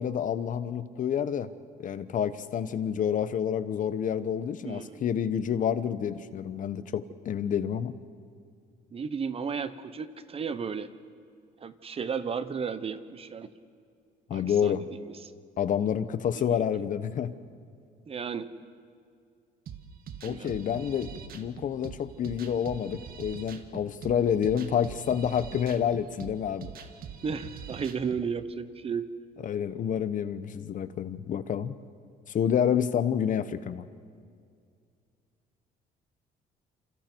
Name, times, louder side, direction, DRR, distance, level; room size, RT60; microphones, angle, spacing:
voice 1, 0.0-1.5 1.8-8.0 14.3-14.8 15.6-17.3 20.2-26.7 29.4-31.7 32.3-33.9, left 8 dB, 50° left, 13 dB, 1.0 m, -28 dB
voice 2, 4.6-5.0 8.9-10.9 11.6-13.5 14.3-15.3 16.3-16.7 18.1-18.5 20.2-20.5 27.2-29.1, right 6 dB, 35° right, 12 dB, 1.1 m, -34 dB
sound 1, 19.7-28.3, right 7 dB, 60° right, 1.8 m, -43 dB
28.5 x 28.0 x 4.6 m, 2.2 s
cardioid pair, 110°, 17 cm